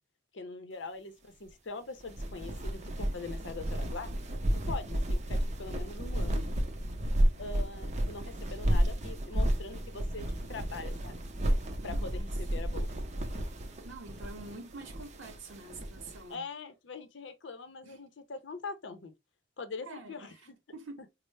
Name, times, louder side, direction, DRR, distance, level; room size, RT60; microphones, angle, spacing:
voice 1, 0.3-4.1 4.7-6.4 7.4-11.2 11.8-12.9 16.3-19.1 19.6-20.6, left 4 dB, 70° left, 0.6 m, -42 dB
sound 1, 2.0-16.2, right 1 dB, 35° right, 0.5 m, -32 dB
voice 2, 11.8-12.3 13.8-16.4 17.8-18.0 19.8-20.4 20.7-21.0, right 3 dB, 85° right, 0.7 m, -46 dB
4.2 x 2.0 x 3.2 m
head